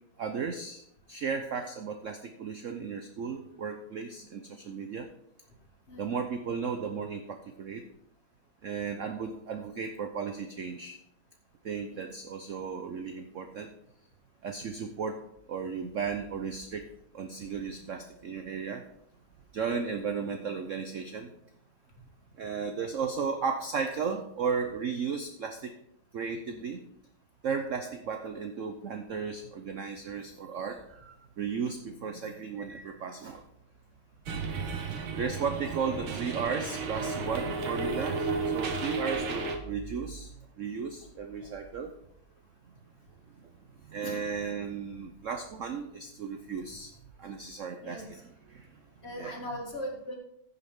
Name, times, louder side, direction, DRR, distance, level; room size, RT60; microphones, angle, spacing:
voice 1, 0.2-0.8 1.1-5.1 6.0-7.8 8.6-11.0 11.6-13.7 14.4-15.2 15.5-16.9 17.1-18.8 19.5-21.3 22.4-25.7 26.1-26.8 27.4-33.4 34.6-34.9 35.2-40.3 40.6-41.9 43.9-46.9 47.2-48.2 48.5-48.7 49.2-49.4, right 6 dB, 65° right, 6 dB, 0.7 m, -35 dB
voice 2, 5.9-6.2 11.9-12.1 35.9-36.2 44.0-44.2 47.8-48.2 49.0-50.1, equal, 35° left, 0 dB, 1.9 m, -40 dB
sound 1, 34.3-39.6, right 4 dB, 90° right, 2.0 m, -33 dB
15.0 x 6.2 x 3.6 m, 0.75 s
omnidirectional pair, 2.2 m